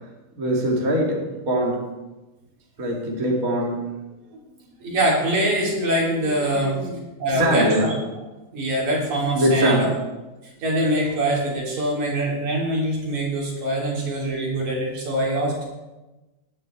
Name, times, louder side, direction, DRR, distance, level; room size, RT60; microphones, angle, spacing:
voice 1, 0.4-1.8 2.8-3.9 6.1-7.0 7.3-7.9 9.4-9.9, right 1 dB, 30° right, -1 dB, 2.2 m, -23 dB
voice 2, 4.8-6.8 7.2-7.9 8.5-10.0 10.6-15.6, right 1 dB, 60° right, -3 dB, 4.8 m, -23 dB
18.0 x 10.0 x 4.6 m, 1.1 s
omnidirectional pair, 3.8 m